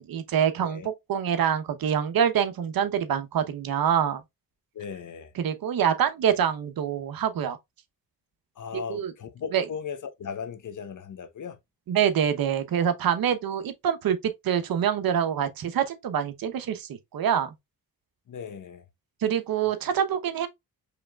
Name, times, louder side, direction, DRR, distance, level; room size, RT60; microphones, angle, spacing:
voice 1, 0.0-4.2 5.4-7.6 8.9-9.1 9.5-9.6 11.9-14.2 14.4-17.5 19.2-20.5, right 8 dB, 70° right, 0.9 m, -25 dB
voice 2, 4.7-5.3 8.6-11.6 18.3-18.8 19.6-19.7, left 7 dB, 55° left, 0.9 m, -37 dB
5.0 x 3.4 x 2.3 m
cardioid pair, 70°, 36 cm